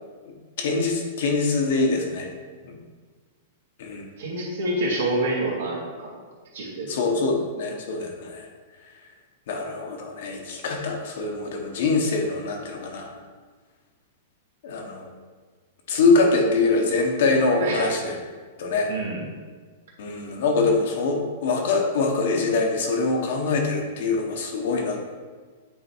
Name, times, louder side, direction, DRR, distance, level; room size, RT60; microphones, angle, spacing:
voice 1, 0.3-2.3 2.7-2.8 3.8-4.1 6.9-8.5 9.5-13.1 14.6-15.1 15.9-18.2 18.6-18.9 20.0-25.0, left 3 dB, 65° left, 1 dB, 1.4 m, -24 dB
voice 2, 4.2-6.2 6.5-6.9 17.6-17.9 18.9-19.2, right 1 dB, 80° right, -3 dB, 2.2 m, -27 dB
8.7 x 3.7 x 4.6 m, 1.5 s
supercardioid pair, 150°, 0 cm